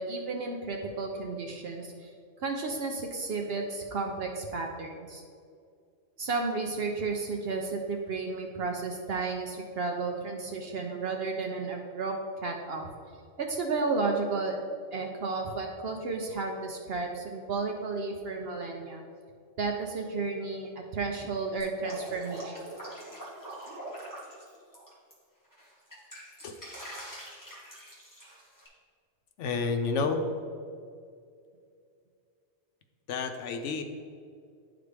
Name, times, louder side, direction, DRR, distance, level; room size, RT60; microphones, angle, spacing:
voice 1, 0.0-2.1 2.4-5.2 6.2-12.1 12.4-12.9 13.4-14.6 14.9-19.0 19.6-22.6, right 3 dB, 60° right, 2 dB, 0.8 m, -32 dB
Drip, 21.6-25.1 25.5-28.7, right 1 dB, 15° left, 1.6 m, -44 dB
voice 2, 29.4-30.2 33.1-33.8, left 4 dB, 80° left, 6 dB, 1.0 m, -30 dB
11.0 x 4.0 x 3.3 m, 2.3 s
omnidirectional pair, 1.2 m